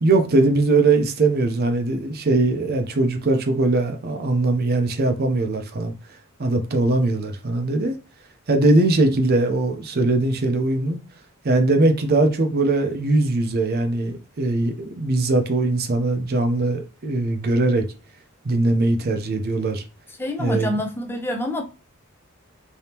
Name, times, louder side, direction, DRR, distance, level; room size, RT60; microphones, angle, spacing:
voice 1, 0.0-5.9 6.4-7.9 8.5-11.0 11.4-17.9 18.4-19.8 20.4-20.7, right 2 dB, 45° right, 0.6 m, -20 dB
voice 2, 20.2-21.6, left 1 dB, 10° left, 0.4 m, -26 dB
3.4 x 2.7 x 2.8 m
head